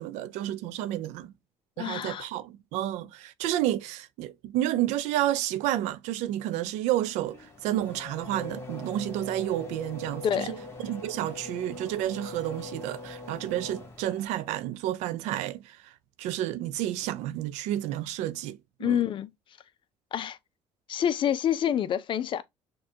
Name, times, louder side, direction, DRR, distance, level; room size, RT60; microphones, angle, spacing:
voice 1, 0.0-1.3 1.8-15.9 16.2-19.0, right 13 dB, 85° right, 0.4 m, -30 dB
voice 2, 1.8-2.2 10.2-10.6 18.8-19.3 20.1-20.4 20.9-22.4, left 9 dB, 45° left, 0.4 m, -27 dB
Race car auto racing / Accelerating revving vroom, 7.3-14.5, left 2 dB, 20° left, 1.3 m, -42 dB
6.4 x 2.3 x 2.7 m
cardioid pair, 110°, 12 cm